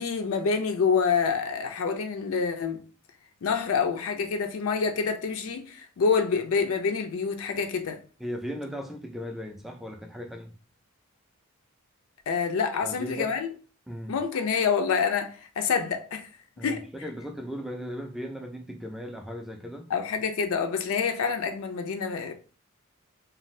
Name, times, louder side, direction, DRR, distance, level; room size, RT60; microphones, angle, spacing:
voice 1, 0.0-2.8 3.4-8.0 12.3-13.5 14.1-16.3 16.6-16.8 19.9-22.3, left 5 dB, 75° left, 0.4 m, -27 dB
voice 2, 8.2-10.5 12.8-13.3 13.9-14.2 16.6-19.9, equal, ahead, 0.3 m, -37 dB
2.6 x 2.3 x 3.1 m
head